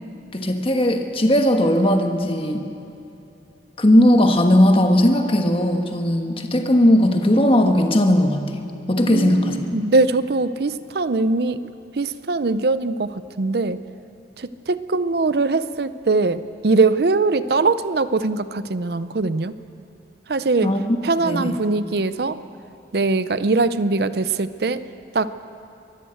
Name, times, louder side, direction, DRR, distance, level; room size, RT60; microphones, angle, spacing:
voice 1, 0.3-2.7 3.8-8.6 8.9-9.6 20.6-21.0 21.2-21.5, left 1 dB, 30° left, 5 dB, 1.3 m, -17 dB
voice 2, 9.0-11.6 12.0-13.8 14.4-19.6 20.3-20.7 21.0-22.4 22.9-24.8 25.1-25.3, right 3 dB, 60° right, 13 dB, 0.6 m, -21 dB
23.0 x 14.5 x 8.0 m, 2.7 s
head